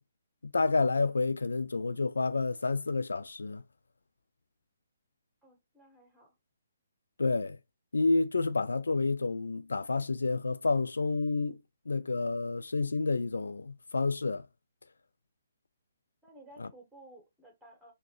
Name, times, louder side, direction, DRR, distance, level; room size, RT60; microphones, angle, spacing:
voice 1, 0.4-3.6 7.2-7.6 7.9-11.6 11.9-14.5 16.6-16.7, left 3 dB, 75° left, 0.3 m, -29 dB
voice 2, 5.4-6.3 16.2-17.9, right 1 dB, 5° right, 1.8 m, -55 dB
3.9 x 2.7 x 3.0 m
figure-of-eight pair, 135°, 0 cm